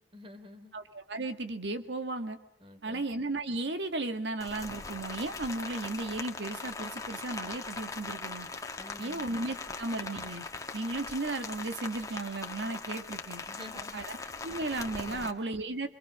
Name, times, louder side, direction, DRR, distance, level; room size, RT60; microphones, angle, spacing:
voice 1, 0.1-0.7 2.6-3.0 8.8-9.2 13.5-14.1 15.1-15.3, left 1 dB, 30° right, 8 dB, 3.3 m, -49 dB
voice 2, 0.7-2.4 2.8-8.5 9.0-10.4 10.7-13.4 13.9-14.2 14.4-15.9, right 2 dB, 85° right, 8 dB, 1.8 m, -35 dB
Rain, 4.4-15.3, left 3 dB, 20° left, 1.8 m, -40 dB
26.5 x 25.0 x 6.3 m, 0.77 s
head